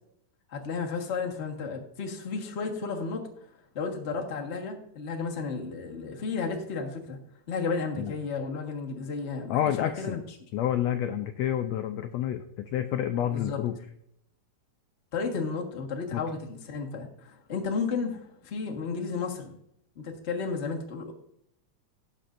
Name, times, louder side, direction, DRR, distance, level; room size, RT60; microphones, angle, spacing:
voice 1, 0.5-3.2 3.7-7.2 7.5-10.2 13.3-13.6 15.1-19.5 19.9-21.1, left 4 dB, 40° left, 0 dB, 0.9 m, -33 dB
voice 2, 9.5-10.2 10.5-13.8 16.1-16.2, left 10 dB, 85° left, 7 dB, 1.5 m, -29 dB
18.0 x 7.4 x 2.6 m, 0.74 s
omnidirectional pair, 3.7 m